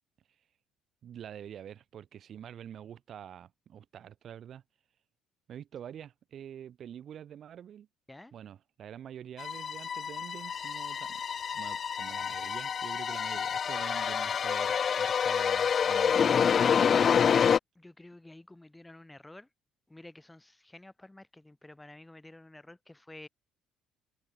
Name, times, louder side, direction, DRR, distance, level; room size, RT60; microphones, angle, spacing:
voice 1, 1.0-4.6 5.5-7.9 8.3-11.2 11.5-16.3, right 9 dB, 55° right, 5.0 m, -46 dB
sound 1, 9.4-17.6, left 7 dB, 40° left, 0.5 m, -27 dB
voice 2, 17.8-19.5 19.9-23.3, left 1 dB, 10° left, 5.5 m, -50 dB
cardioid pair, 100°, 0 cm